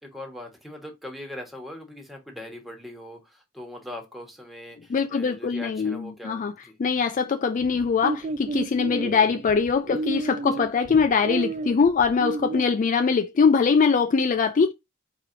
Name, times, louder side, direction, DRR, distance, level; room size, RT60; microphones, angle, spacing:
voice 1, 0.0-6.8 10.1-10.3 10.6-10.7, left 1 dB, ahead, 1.4 m, -41 dB
voice 2, 4.9-6.5 6.8-14.7, left 5 dB, 40° left, 0.4 m, -22 dB
sound 1, 7.6-12.6, right 3 dB, 35° right, 0.4 m, -32 dB
4.6 x 3.0 x 3.9 m
head